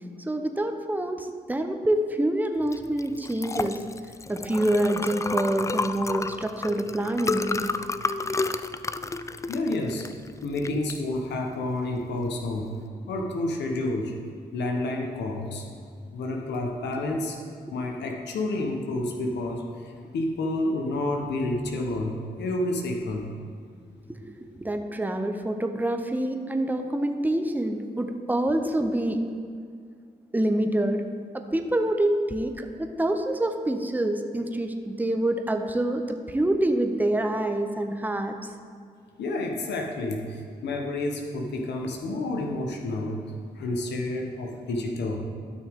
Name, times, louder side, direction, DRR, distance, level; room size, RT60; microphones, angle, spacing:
voice 1, 0.3-3.8 4.3-7.6 24.1-29.2 30.3-31.0 31.3-38.4, right 1 dB, 10° right, 6 dB, 0.8 m, -26 dB
Liquid, 2.6-12.8, left 3 dB, 15° left, 0.3 m, -32 dB
voice 2, 9.5-10.0 10.4-12.7 13.1-14.1 14.5-15.6 16.1-17.4 17.7-22.1 22.4-23.3 39.2-43.2 43.6-45.2, left 2 dB, 85° left, 2 dB, 1.0 m, -29 dB
12.5 x 6.2 x 3.6 m, 2.2 s
cardioid pair, 55°, 18 cm